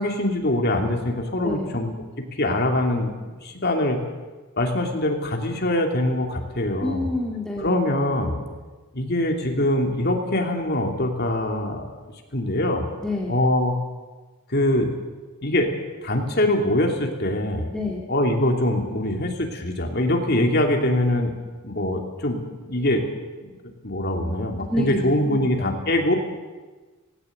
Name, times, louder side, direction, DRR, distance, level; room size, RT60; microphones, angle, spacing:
voice 1, 0.0-4.0 4.6-7.1 7.6-8.4 8.9-11.9 12.3-12.9 13.3-13.7 14.5-14.9 15.4-15.7 16.0-17.7 18.1-21.3 21.6-22.4 22.7-23.0 23.4-23.5 23.8-26.2, left 1 dB, 50° left, 2 dB, 3.0 m, -23 dB
voice 2, 1.4-1.7 6.8-7.7 13.0-13.4 17.7-18.1 24.7-25.7, left 2 dB, 5° left, -3 dB, 2.2 m, -28 dB
18.5 x 17.5 x 8.2 m, 1.3 s
head